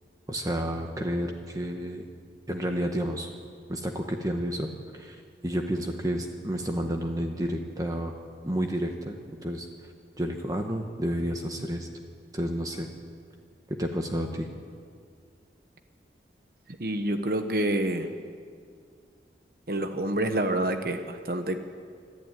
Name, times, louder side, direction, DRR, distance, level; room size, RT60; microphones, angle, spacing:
voice 1, 0.3-2.1 2.5-3.3 3.7-8.2 8.4-9.2 9.4-9.7 10.2-11.9 12.3-12.9 13.7-14.5, equal, 20° right, 3 dB, 1.3 m, -30 dB
voice 2, 16.8-18.1 19.7-21.6, right 1 dB, 55° right, 7 dB, 1.2 m, -27 dB
25.5 x 12.5 x 9.2 m, 2.2 s
head